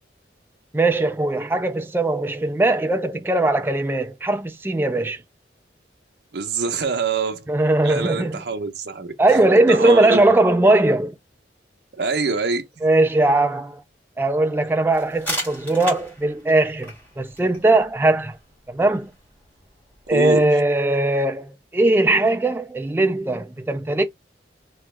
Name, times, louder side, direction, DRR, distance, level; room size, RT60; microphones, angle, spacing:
voice 1, 0.7-5.2 7.5-8.4 9.2-11.1 12.8-13.8 14.2-18.3 18.7-19.1 20.1-24.1, right 2 dB, 10° right, 0.3 m, -19 dB
voice 2, 6.3-7.4 7.8-10.2 12.0-12.7 20.1-20.6, right 4 dB, 65° right, 0.8 m, -25 dB
sound 1, 14.9-20.5, equal, 10° left, 2.0 m, -36 dB
3.1 x 3.1 x 3.2 m
head